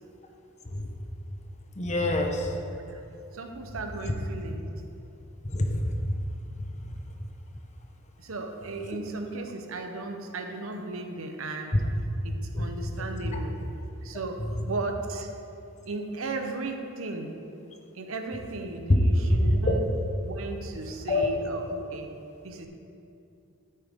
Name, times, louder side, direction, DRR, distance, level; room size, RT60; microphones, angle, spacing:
voice 1, 1.8-2.5 5.5-5.8 6.8-6.9 12.5-12.7 13.2-13.4 18.9-19.0 19.7-19.8 21.1-21.3, left 2 dB, 30° left, 3 dB, 0.8 m, -25 dB
voice 2, 3.3-4.7 8.2-11.8 12.2-13.7 14.0-15.3 15.8-17.5 17.9-19.9 20.2-22.7, right 2 dB, 65° right, 4 dB, 0.8 m, -36 dB
9.7 x 8.8 x 3.6 m, 2.6 s
head